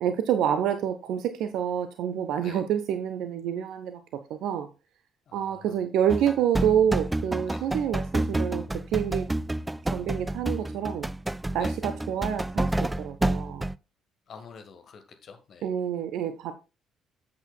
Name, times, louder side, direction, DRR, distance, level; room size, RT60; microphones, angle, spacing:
voice 1, 0.0-4.7 5.3-9.3 9.9-11.1 11.5-13.7 15.6-16.5, right 9 dB, 60° right, 0.6 m, -28 dB
voice 2, 5.3-5.8 7.5-7.7 11.6-11.8 14.3-15.7, left 6 dB, 45° left, 1.6 m, -47 dB
sound 1, 6.1-13.8, right 1 dB, 10° right, 0.3 m, -29 dB
10.0 x 8.1 x 2.3 m
figure-of-eight pair, 50°, 0 cm